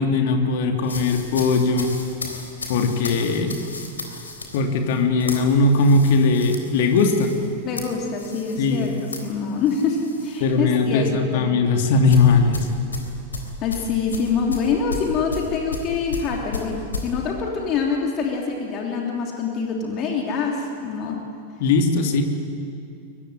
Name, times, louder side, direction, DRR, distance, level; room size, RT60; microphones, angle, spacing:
voice 1, 0.0-1.9 2.7-3.6 4.5-7.3 8.6-8.9 10.4-12.7 21.6-22.2, left 3 dB, 50° left, 4 dB, 2.9 m, -19 dB
sound 1, 0.8-10.4 10.8-11.0 12.1-17.1, left 3 dB, 75° left, 3.7 m, -34 dB
voice 2, 7.6-8.9 9.2-11.5 13.6-21.2, left 5 dB, 35° left, 0 dB, 3.1 m, -25 dB
23.5 x 22.5 x 9.8 m, 2.5 s
figure-of-eight pair, 90°, 0 cm